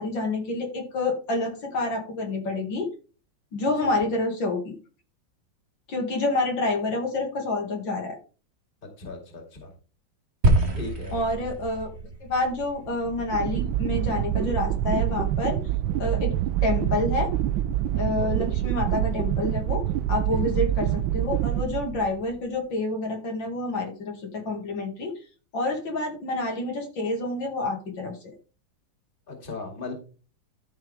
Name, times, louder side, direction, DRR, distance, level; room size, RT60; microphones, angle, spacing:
voice 1, 0.0-2.9 3.5-4.7 5.9-8.2 11.1-11.9 12.2-15.6 16.0-16.3 16.6-17.3 18.0-19.8 20.1-25.1 25.5-28.2, left 2 dB, 75° left, 2 dB, 2.9 m, -28 dB
voice 2, 3.6-3.9 9.0-9.7 10.7-11.2 18.2-18.3 20.3-20.4 29.3-29.9, left 3 dB, 25° left, 2 dB, 2.3 m, -37 dB
sound 1, 10.4-14.8, right 2 dB, 35° right, 1.5 m, -27 dB
sound 2, 12.9-22.4, right 12 dB, 85° right, 1.3 m, -26 dB
13.5 x 5.7 x 3.5 m, 0.36 s
omnidirectional pair, 2.1 m